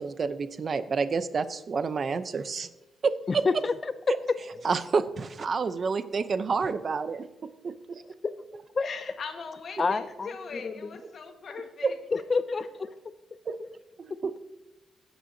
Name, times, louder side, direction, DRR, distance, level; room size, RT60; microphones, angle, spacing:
voice 1, 0.0-2.7 3.0-3.1 4.6-8.0 11.8-11.9 13.5-13.6 14.0-14.3, right 5 dB, 40° right, 0.6 m, -29 dB
voice 2, 3.3-3.7 4.1-4.4 8.2-8.4 8.8-8.9 9.8-11.0 12.1-12.9 13.6-13.7 14.1-14.2, left 4 dB, 35° left, 0.4 m, -28 dB
voice 3, 8.8-12.0, left 5 dB, 50° left, 1.4 m, -40 dB
15.5 x 9.2 x 2.7 m
cardioid pair, 130°, 0 cm